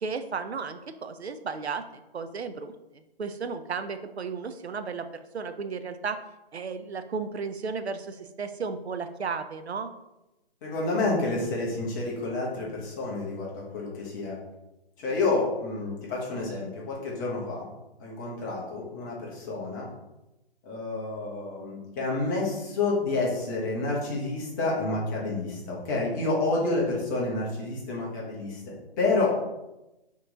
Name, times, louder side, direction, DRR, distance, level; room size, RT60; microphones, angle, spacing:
voice 1, 0.0-6.2 6.5-9.9, right 5 dB, 85° right, 9 dB, 0.6 m, -34 dB
voice 2, 10.6-14.4 15.0-17.7 18.0-19.9 20.6-28.6 29.0-29.4, left 3 dB, 20° left, -3 dB, 0.9 m, -29 dB
4.5 x 3.0 x 3.8 m, 0.96 s
figure-of-eight pair, 145°, 32 cm